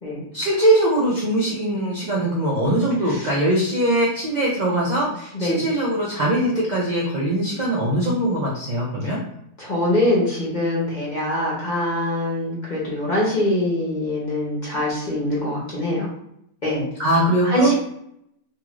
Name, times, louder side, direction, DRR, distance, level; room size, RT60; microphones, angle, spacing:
voice 1, 0.3-9.2 17.0-17.7, right 1 dB, 65° right, -5 dB, 0.4 m, -21 dB
voice 2, 9.6-16.1 16.6-16.8 17.4-17.7, left 1 dB, 35° left, -5 dB, 0.8 m, -23 dB
2.8 x 2.3 x 3.0 m, 0.75 s
omnidirectional pair, 1.6 m